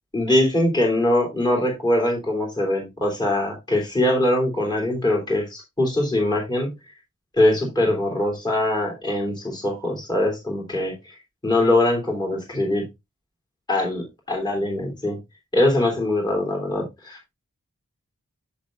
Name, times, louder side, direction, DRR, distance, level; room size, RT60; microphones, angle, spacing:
voice 1, 0.1-6.7 7.4-10.9 11.4-12.8 13.7-15.2 15.5-17.2, left 1 dB, 20° left, 0 dB, 3.1 m, -22 dB
7.6 x 7.3 x 2.5 m, 0.21 s
head